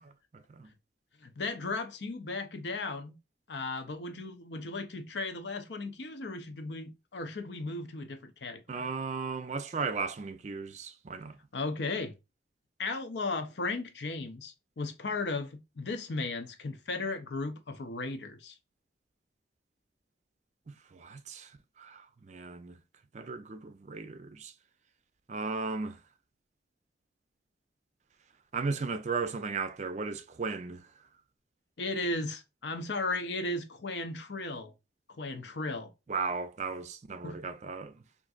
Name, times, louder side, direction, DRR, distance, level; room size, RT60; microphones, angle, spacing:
voice 1, 0.3-0.7 8.7-11.4 20.9-21.5 21.8-22.8 23.1-24.5 25.3-26.0 28.5-30.9 36.1-38.0, right 4 dB, 40° right, 0.4 m, -36 dB
voice 2, 1.2-3.2 3.5-8.8 11.5-12.1 12.8-18.6 31.8-34.7 35.2-35.9 37.2-37.4, left 3 dB, 75° left, 0.6 m, -36 dB
3.7 x 2.5 x 2.3 m
head